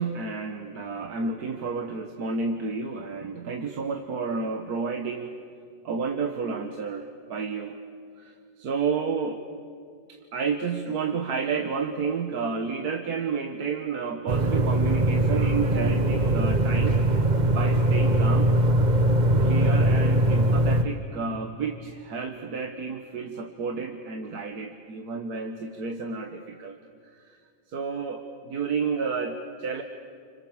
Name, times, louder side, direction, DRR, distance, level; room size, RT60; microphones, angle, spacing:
voice 1, 0.0-5.3 5.8-7.8 8.2-9.4 10.1-17.0 17.5-18.5 19.4-26.8 27.1-27.4 27.7-29.8, right 5 dB, 55° right, 5 dB, 1.6 m, -31 dB
sound 1, 14.3-20.8, right 1 dB, 30° right, 0.9 m, -21 dB
30.0 x 25.5 x 7.3 m, 2.3 s
omnidirectional pair, 2.1 m